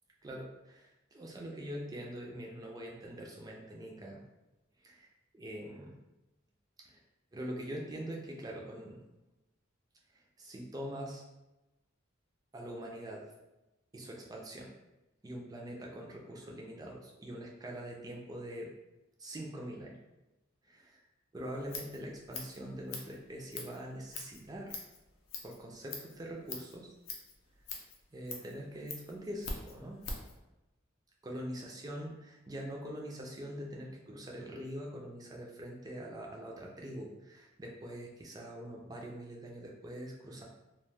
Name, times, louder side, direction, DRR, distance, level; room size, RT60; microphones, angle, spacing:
voice 1, 0.2-4.2 4.8-6.0 6.9-7.0 7.3-9.0 10.1-11.2 12.5-13.3 13.9-14.7 15.2-18.7 19.2-20.0 20.6-21.0 21.3-24.8 25.4-26.9 28.1-30.0 31.2-32.2 32.5-40.4, equal, 20° right, -1 dB, 0.3 m, -43 dB
Scissors, 21.4-30.4, left 3 dB, 80° left, 0.5 m, -45 dB
2.3 x 2.2 x 3.2 m, 1.0 s
head